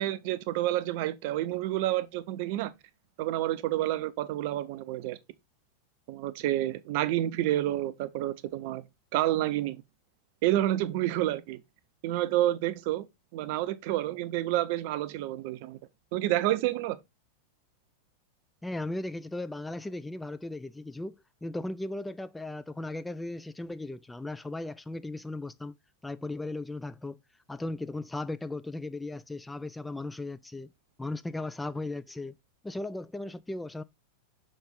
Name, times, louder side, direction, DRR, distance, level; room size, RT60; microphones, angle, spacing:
voice 1, 0.0-2.7 3.2-5.2 6.1-8.8 9.1-9.8 10.4-11.6 12.0-13.1 13.3-15.8 16.1-17.0, right 14 dB, 50° right, 0.6 m, -29 dB
voice 2, 18.6-25.7 26.0-27.2 27.5-30.7 31.0-32.3 32.6-33.8, left 2 dB, 5° left, 0.4 m, -37 dB
6.1 x 4.3 x 3.9 m
figure-of-eight pair, 90°, 0 cm